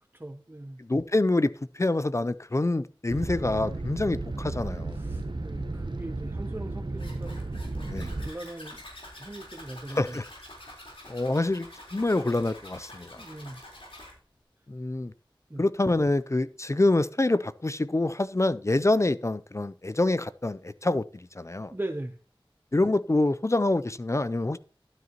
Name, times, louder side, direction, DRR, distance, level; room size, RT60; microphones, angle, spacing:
voice 1, 0.1-0.8 4.9-7.9 8.2-8.8 9.2-10.2 13.2-13.6 15.5-15.6 21.7-22.2, right 1 dB, 25° right, 0.7 m, -40 dB
voice 2, 0.8-5.0 7.9-8.1 9.9-10.3 11.1-13.2 14.7-15.1 15.6-21.7 22.7-24.6, left 2 dB, 30° left, 0.4 m, -26 dB
sound 1, 3.1-8.3, right 2 dB, 60° right, 0.9 m, -34 dB
Zipper (clothing), 7.0-14.1, left 1 dB, 85° left, 3.9 m, -47 dB
12.0 x 9.4 x 2.9 m
wide cardioid pair, 45°, 9 cm